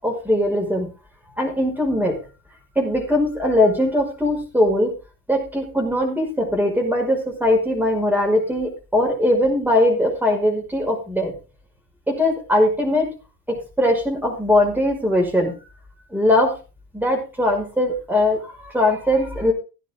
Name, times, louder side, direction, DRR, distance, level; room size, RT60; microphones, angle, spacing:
voice 1, 0.0-0.9 1.4-2.2 2.8-4.9 5.3-11.3 12.1-13.1 13.5-15.5 16.1-16.5 16.9-19.5, left 1 dB, 5° right, 2 dB, 5.5 m, -20 dB
15.5 x 10.0 x 3.7 m, 0.32 s
figure-of-eight pair, 65°, 48 cm